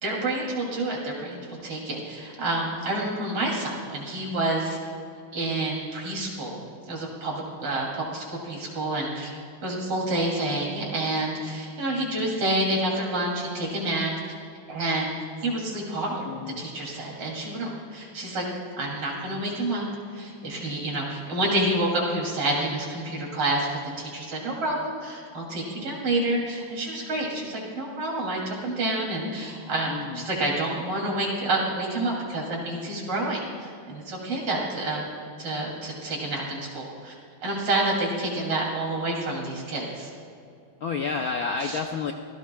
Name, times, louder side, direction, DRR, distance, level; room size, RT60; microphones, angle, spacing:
voice 1, 0.0-4.8 5.3-6.6 6.9-9.3 9.6-14.1 14.7-15.1 15.4-16.3 16.6-18.4 18.7-19.9 20.1-23.7 24.0-35.0 35.4-37.2 37.4-40.1 41.6-41.8, right 1 dB, 80° right, -2 dB, 3.9 m, -28 dB
voice 2, 16.2-16.6 29.9-30.2 40.8-42.1, left 5 dB, 70° left, 3 dB, 0.9 m, -30 dB
25.5 x 16.5 x 2.3 m, 2.5 s
omnidirectional pair, 2.4 m